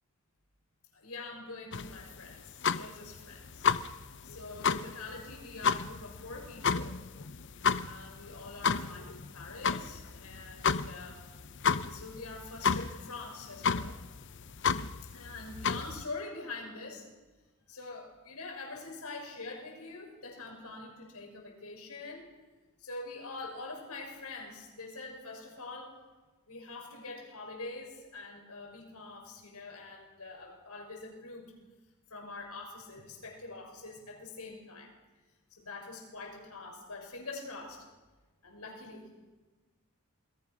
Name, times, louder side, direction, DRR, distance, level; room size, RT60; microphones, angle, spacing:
voice 1, 0.9-3.7 4.2-6.9 7.5-11.2 11.8-14.0 15.1-17.1 17.7-22.2 22.8-26.0 26.5-31.5 32.1-34.9 35.5-37.8 38.4-39.3, left 3 dB, 85° left, 1 dB, 6.5 m, -44 dB
sound 1, 1.7-16.0, left 5 dB, 55° left, 0.7 m, -32 dB
27.5 x 21.5 x 6.3 m, 1.2 s
head